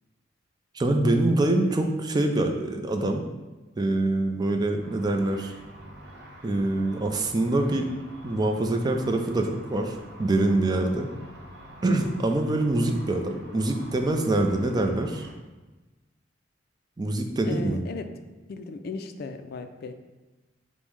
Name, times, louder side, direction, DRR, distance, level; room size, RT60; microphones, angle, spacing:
voice 1, 0.7-3.2 3.8-5.5 6.4-7.9 8.2-11.1 11.8-15.3 17.0-17.8, right 2 dB, 20° right, 4 dB, 0.4 m, -25 dB
Car / Traffic noise roadway noise / Engine, 4.8-15.3, equal, 60° right, 0.9 m, -47 dB
voice 2, 17.4-18.1 18.5-19.9, left 4 dB, 55° left, 8 dB, 0.3 m, -36 dB
5.3 x 2.1 x 4.6 m, 1.2 s
head